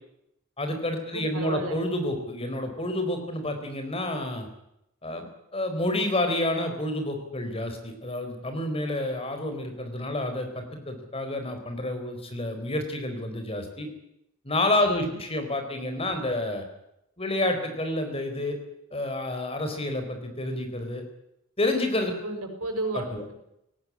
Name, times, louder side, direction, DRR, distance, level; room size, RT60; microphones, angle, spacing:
voice 1, 0.6-4.5 5.0-5.3 5.5-13.9 14.4-16.6 17.2-18.6 18.9-21.0 21.6-22.1 22.9-23.2, left 1 dB, 25° left, 6 dB, 4.2 m, -29 dB
voice 2, 1.1-1.8 14.8-15.2 22.2-23.3, right 2 dB, 85° right, 4 dB, 6.2 m, -33 dB
18.5 x 18.0 x 9.7 m, 0.81 s
head